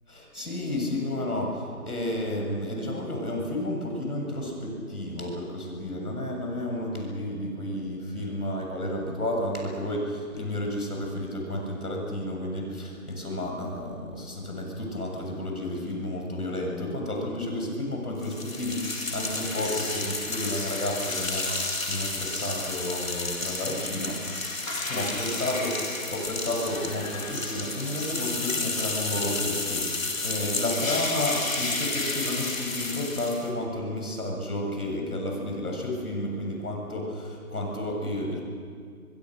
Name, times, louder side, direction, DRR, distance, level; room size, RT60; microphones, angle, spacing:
voice 1, 0.1-24.2 24.8-38.4, left 1 dB, 85° left, 1 dB, 7.8 m, -31 dB
sound 1, 18.2-33.5, left 3 dB, 60° left, 3.7 m, -31 dB
25.0 x 22.5 x 6.6 m, 2.1 s
figure-of-eight pair, 180°, 44 cm